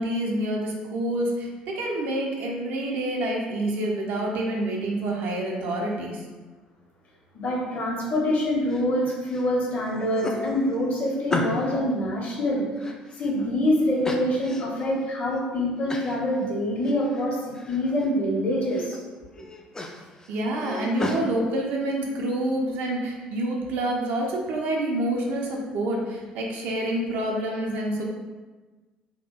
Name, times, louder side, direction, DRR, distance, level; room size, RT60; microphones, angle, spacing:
voice 1, 0.0-6.2 20.3-28.0, right 1 dB, 55° right, -1 dB, 0.4 m, -27 dB
voice 2, 7.3-12.7 13.2-17.4 17.7-19.0, left 1 dB, 45° left, -3 dB, 0.8 m, -25 dB
sound 1, 8.7-9.4 9.8-11.8 12.3-13.5 14.0-14.9 15.3-15.4 15.9-16.2 16.6-17.3 17.5-18.1 18.5-19.0 19.3-21.2, left 2 dB, 15° left, 0.3 m, -34 dB
2.8 x 2.3 x 2.2 m, 1.3 s
figure-of-eight pair, 55°, 4 cm